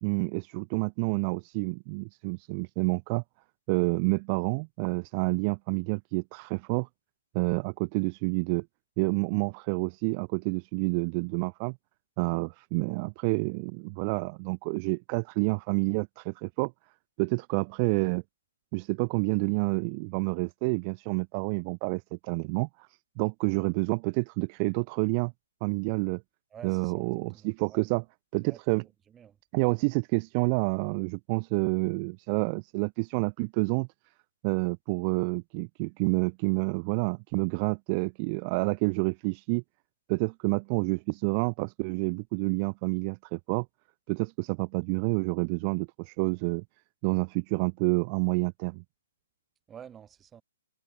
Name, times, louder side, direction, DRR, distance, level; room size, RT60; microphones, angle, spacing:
voice 1, 0.0-3.2 3.7-6.9 7.3-8.7 9.0-11.8 12.2-16.7 17.2-18.2 18.7-22.7 23.2-25.3 25.6-26.2 26.6-28.0 28.3-28.8 29.5-33.9 34.4-39.6 40.1-43.7 44.1-46.6 47.0-48.8, right 34 dB, 35° right, 0.5 m, -28 dB
voice 2, 26.5-27.9 28.4-28.6 29.1-29.4 49.7-50.4, right 8 dB, 15° right, 5.1 m, -49 dB
hypercardioid pair, 135°, 0 cm